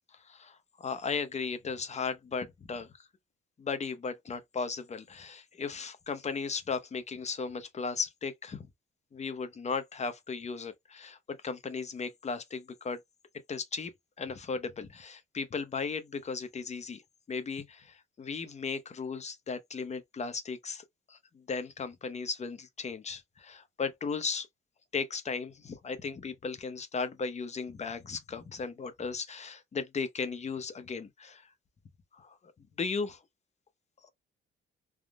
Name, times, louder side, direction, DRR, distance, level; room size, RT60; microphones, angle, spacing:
voice 1, 0.3-2.9 3.6-8.6 9.1-13.0 13.5-13.9 14.2-17.0 17.3-24.5 24.9-31.4 32.2-32.4 32.8-33.2, left 5 dB, 35° left, 0.7 m, -36 dB
3.5 x 2.0 x 2.4 m
cardioid pair, 90°, 20 cm